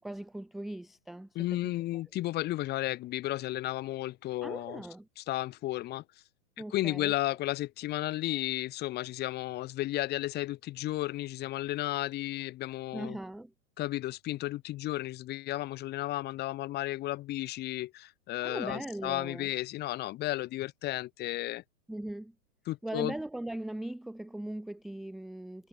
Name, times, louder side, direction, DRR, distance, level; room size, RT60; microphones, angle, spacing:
voice 1, 0.0-1.3 1.6-1.7 4.4-5.1 6.6-7.4 12.9-13.5 18.4-19.5 21.9-22.3 22.8-25.7, right 1 dB, ahead, 0.4 m, -39 dB
voice 2, 1.3-4.8 5.2-6.0 6.7-13.2 13.8-21.6 22.7-23.1, left 16 dB, 25° left, 1.1 m, -33 dB
hypercardioid pair, 140°, 43 cm